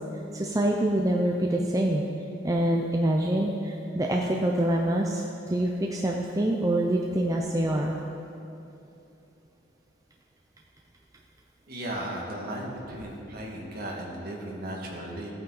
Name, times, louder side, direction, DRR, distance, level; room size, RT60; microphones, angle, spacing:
voice 1, 0.3-2.0 2.4-7.9, right 1 dB, 15° right, 0 dB, 0.5 m, -25 dB
voice 2, 11.7-15.3, right 1 dB, 50° right, -2 dB, 1.8 m, -36 dB
15.0 x 8.8 x 3.9 m, 2.9 s
head